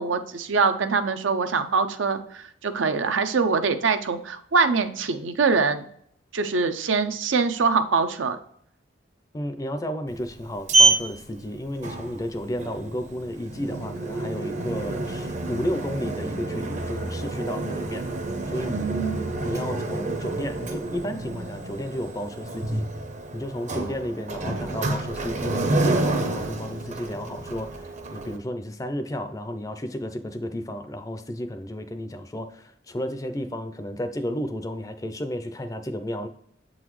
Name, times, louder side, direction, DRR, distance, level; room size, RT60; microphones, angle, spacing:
voice 1, 0.0-5.8 6.3-8.4 18.7-19.3, right 4 dB, 80° right, 9 dB, 0.6 m, -24 dB
voice 2, 9.3-18.0 18.5-19.0 19.4-22.9 23.3-36.3, equal, 15° left, 8 dB, 0.4 m, -32 dB
Sliding door, 10.1-28.4, right 2 dB, 40° right, 0.6 m, -28 dB
7.7 x 4.0 x 3.1 m, 0.67 s
head